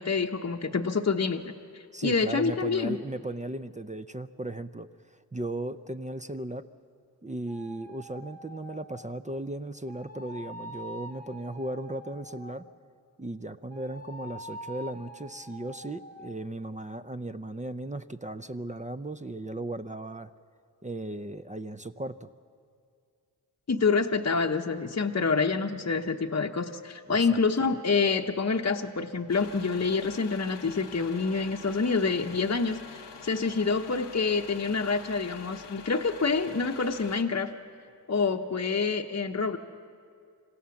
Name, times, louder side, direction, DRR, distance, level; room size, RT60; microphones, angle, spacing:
voice 1, 0.0-3.0 23.7-37.5 38.1-39.6, left 4 dB, 40° left, 2 dB, 0.9 m, -27 dB
voice 2, 1.9-4.9 5.3-6.7 7.2-12.7 13.2-20.3 20.8-22.3 27.1-27.4, right 1 dB, 20° right, 10 dB, 0.6 m, -36 dB
sound 1, 7.5-9.2 9.9-12.8 13.7-16.4, right 1 dB, 40° right, 2.0 m, -45 dB
sound 2, 29.3-37.2, left 6 dB, 90° left, 1.0 m, -46 dB
26.5 x 16.0 x 7.1 m, 2.3 s
cardioid pair, 40°, 41 cm